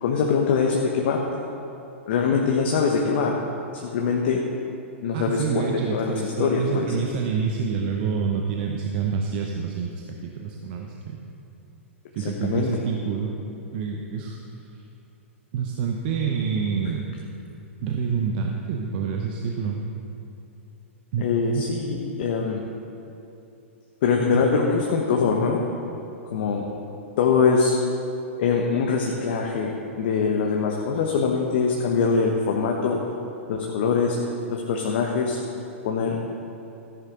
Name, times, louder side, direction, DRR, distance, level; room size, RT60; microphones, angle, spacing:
voice 1, 0.0-1.2 2.1-3.4 3.8-4.4 5.0-6.9 12.2-12.7 21.2-22.6 24.0-25.6 26.3-26.6 27.2-27.8 28.4-33.0 33.5-34.2 34.5-35.4 35.8-36.2, left 5 dB, 50° left, 0 dB, 1.1 m, -23 dB
voice 2, 5.1-11.2 12.1-13.4 13.7-14.4 14.7-14.8 15.5-17.0 17.8-19.8 21.1-21.3 21.5-21.6 24.3-24.4, right 6 dB, 45° right, 1 dB, 0.9 m, -27 dB
14.0 x 10.0 x 3.8 m, 2.8 s
figure-of-eight pair, 110°, 7 cm